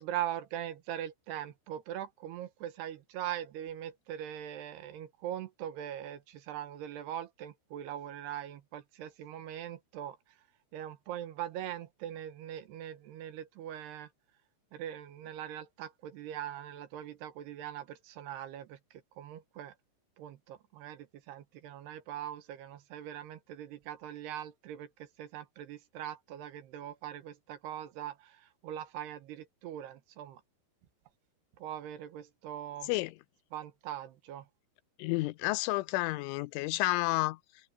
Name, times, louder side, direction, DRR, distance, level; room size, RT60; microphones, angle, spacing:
voice 1, 0.0-10.2 10.7-14.1 14.7-18.8 19.2-19.7 20.2-28.4 28.6-30.4 31.6-32.9 33.5-34.4, right 11 dB, 70° right, 3.0 m, -41 dB
voice 2, 32.8-33.2 35.0-37.4, left 20 dB, 90° left, 3.2 m, -30 dB
omnidirectional pair, 5.4 m